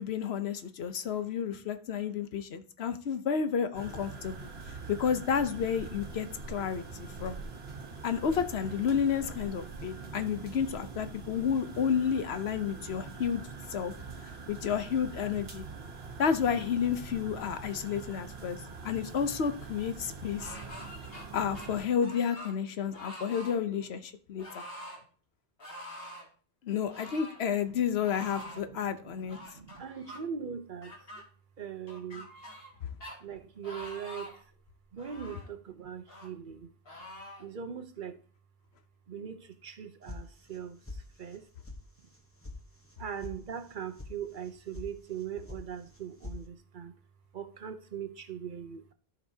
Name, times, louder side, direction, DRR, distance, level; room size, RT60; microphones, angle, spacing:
voice 1, 0.0-4.5 4.9-7.4 8.0-13.4 13.7-13.9 14.5-15.6 16.2-18.6 18.8-20.5 21.3-24.6 26.6-29.4, left 7 dB, 85° left, 1.0 m, -31 dB
sound 1, 3.7-21.9, right 4 dB, 75° right, 1.4 m, -44 dB
sound 2, 20.4-21.3 21.5-22.6 22.9-23.5 24.4-25.0 25.6-26.3 26.9-27.4 28.0-28.6 29.3-30.2 30.8-31.2 31.9-32.7 33.0-33.2 33.6-34.4 35.0-35.5 36.1-36.3 36.9-37.4, left 1 dB, 70° left, 2.1 m, -45 dB
voice 2, 27.7-30.9 31.6-32.3 33.2-34.4 34.9-36.7 37.4-38.2 39.1-41.5 43.0-46.9 47.3-48.9, right 8 dB, 55° right, 0.9 m, -41 dB
sound 3, 40.1-40.6 40.9-41.4 41.6-41.8 42.1-42.6 42.8-43.3 43.6-44.1 44.4-44.9 45.1-45.6 45.9-46.4, left 3 dB, 15° left, 1.0 m, -43 dB
13.0 x 5.2 x 2.8 m
omnidirectional pair, 1.0 m